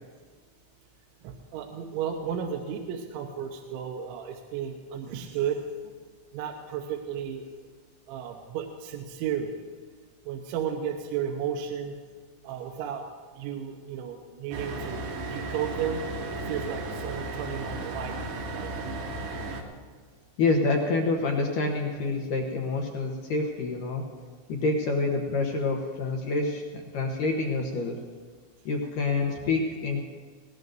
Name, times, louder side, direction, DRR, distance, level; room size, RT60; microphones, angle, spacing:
voice 1, 1.2-5.6 6.3-7.5 8.1-9.5 10.3-12.0 12.4-13.0 13.3-16.0 16.4-19.0, right 8 dB, 80° right, 3 dB, 3.2 m, -33 dB
sound 1, 14.5-19.6, right 2 dB, 65° right, 2.2 m, -35 dB
voice 2, 20.4-24.1 24.5-28.0 28.7-30.0, left 3 dB, 70° left, 1 dB, 2.0 m, -27 dB
20.5 x 18.5 x 2.7 m, 1.5 s
omnidirectional pair, 5.4 m